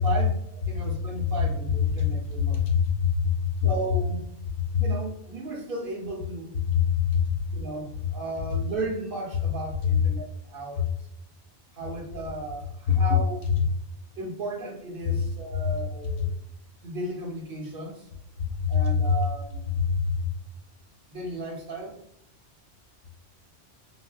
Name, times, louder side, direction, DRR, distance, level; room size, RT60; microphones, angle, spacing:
voice 1, 0.0-2.6 3.6-4.2 4.8-6.6 7.5-10.9 11.7-13.4 14.2-16.3 16.8-18.1 18.7-19.7 21.1-22.0, right 2 dB, 55° right, 0 dB, 0.8 m, -35 dB
voice 2, 2.0-3.3 3.6-3.7 4.7-4.8 6.7-7.4 12.9-13.0 13.4-13.5 15.6-15.7 18.6-18.8 19.1-19.2 19.8-20.2, left 7 dB, 60° left, 1 dB, 0.7 m, -24 dB
3.7 x 2.0 x 2.3 m, 0.74 s
omnidirectional pair, 1.2 m